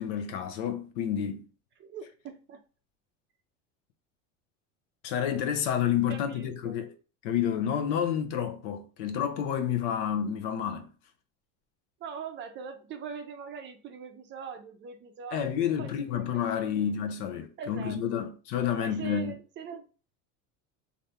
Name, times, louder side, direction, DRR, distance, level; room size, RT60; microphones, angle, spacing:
voice 1, 0.0-1.4 5.0-6.9 7.2-10.9 15.3-19.3, left 9 dB, 85° left, 0.7 m, -29 dB
voice 2, 1.8-2.6 6.1-6.8 12.0-16.9 17.6-18.2 18.8-19.8, right 6 dB, 30° right, 0.5 m, -42 dB
3.3 x 2.6 x 2.7 m
supercardioid pair, 130°, 36 cm